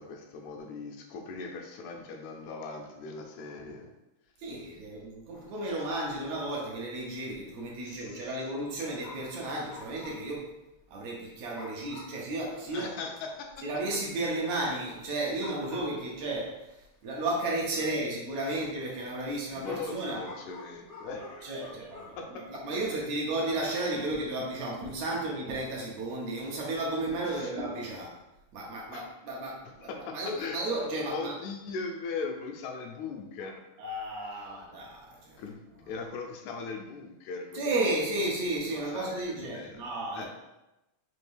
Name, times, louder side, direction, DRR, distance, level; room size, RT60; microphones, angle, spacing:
voice 1, 0.0-3.9 7.8-8.3 12.7-13.7 19.5-21.6 22.2-22.4 27.3-27.5 28.9-29.1 29.8-30.6 31.1-33.6 35.4-35.6 35.9-37.7 38.9-39.8 40.1-40.3, left 4 dB, 80° left, 2 dB, 1.9 m, -39 dB
voice 2, 4.4-10.6 10.9-12.9 13.6-16.8 17.0-20.3 21.1-28.2 28.5-31.3 33.8-35.4 35.7-36.0 37.5-40.3, right 2 dB, 75° right, -2 dB, 1.9 m, -33 dB
sound 1, 5.3-5.6 5.9-6.0 6.3-6.5 7.3-7.6 9.0-10.4 10.7-10.8 11.5-12.3 12.7-12.8 13.2-13.7 15.0-15.1 15.4-16.4 17.1-17.3 19.6-22.2, left 2 dB, 55° left, 0.9 m, -48 dB
5.2 x 2.7 x 3.3 m, 0.94 s
omnidirectional pair, 3.4 m